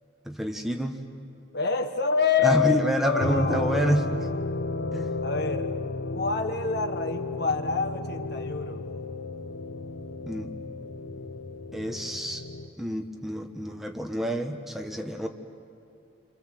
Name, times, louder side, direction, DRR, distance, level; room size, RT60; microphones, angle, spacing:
voice 1, 0.3-1.0 2.4-4.1 4.9-5.1 10.3-10.5 11.7-12.4 12.8-15.3, equal, ahead, 3 dB, 1.2 m, -28 dB
voice 2, 1.5-4.0 5.2-5.7 6.1-8.9, left 5 dB, 55° left, 7 dB, 1.4 m, -27 dB
sound 1, 3.2-12.7, left 3 dB, 75° left, 0.9 m, -33 dB
28.5 x 25.0 x 7.6 m, 2.6 s
head